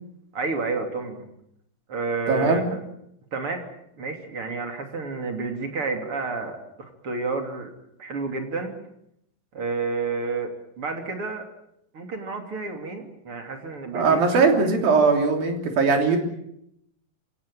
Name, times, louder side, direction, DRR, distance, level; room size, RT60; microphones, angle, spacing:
voice 1, 0.3-1.3 1.9-2.8 3.3-3.6 4.0-7.7 8.0-8.7 9.5-11.5 11.9-14.6, right 4 dB, 40° right, 4 dB, 3.6 m, -30 dB
voice 2, 2.3-2.6 13.9-16.2, right 4 dB, 80° right, 4 dB, 5.0 m, -20 dB
25.5 x 18.0 x 8.9 m, 0.77 s
omnidirectional pair, 4.1 m